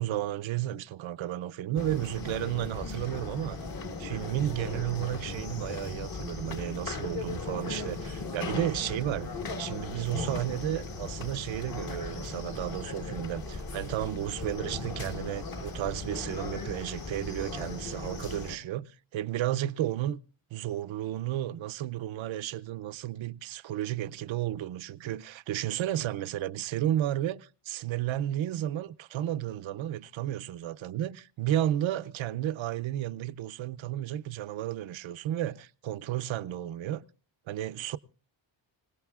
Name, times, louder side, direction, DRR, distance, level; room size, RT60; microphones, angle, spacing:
voice 1, 0.0-3.6 4.0-9.3 9.6-20.2 20.5-37.0 37.5-38.0, right 12 dB, 70° right, 0.6 m, -33 dB
sound 1, 1.8-18.6, left 3 dB, 45° left, 1.4 m, -37 dB
26.5 x 17.5 x 2.4 m
wide cardioid pair, 145°, 50 cm